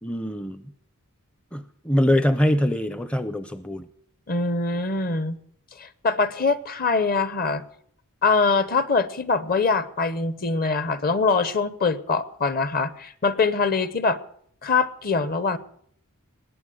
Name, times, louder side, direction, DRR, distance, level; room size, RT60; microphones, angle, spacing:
voice 1, 0.0-0.6 1.5-3.8, equal, 5° left, 12 dB, 0.5 m, -23 dB
voice 2, 4.3-5.4 5.8-7.6 8.2-14.2 14.6-15.6, left 4 dB, 45° left, 16 dB, 0.9 m, -23 dB
20.0 x 8.5 x 7.9 m, 0.65 s
head